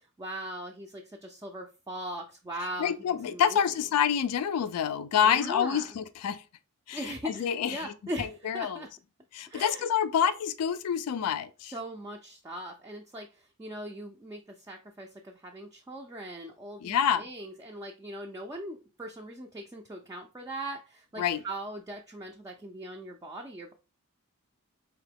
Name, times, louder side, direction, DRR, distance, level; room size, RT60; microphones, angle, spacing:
voice 1, 0.0-3.8 5.2-5.9 6.9-8.9 9.5-9.9 11.7-23.7, right 1 dB, 15° right, 0.3 m, -40 dB
voice 2, 2.8-6.4 6.9-7.9 8.2-8.8 9.3-11.7 16.8-17.2 21.2-21.4, left 8 dB, 85° left, 0.3 m, -27 dB
3.8 x 2.9 x 3.3 m
head